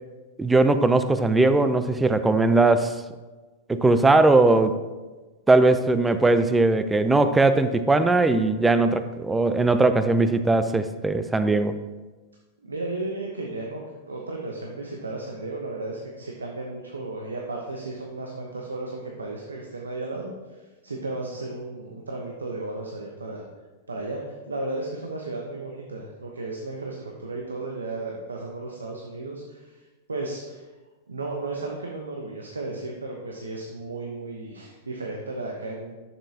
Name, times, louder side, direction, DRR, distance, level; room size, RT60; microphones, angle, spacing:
voice 1, 0.4-2.9 3.7-4.8 5.5-11.8, right 2 dB, 10° right, 11 dB, 0.5 m, -19 dB
voice 2, 12.6-13.8 14.1-23.4 23.9-29.8 30.1-30.7 31.1-36.0, right 2 dB, 85° right, 0 dB, 0.9 m, -34 dB
10.0 x 7.2 x 2.9 m, 1.2 s
hypercardioid pair, 100°, 0 cm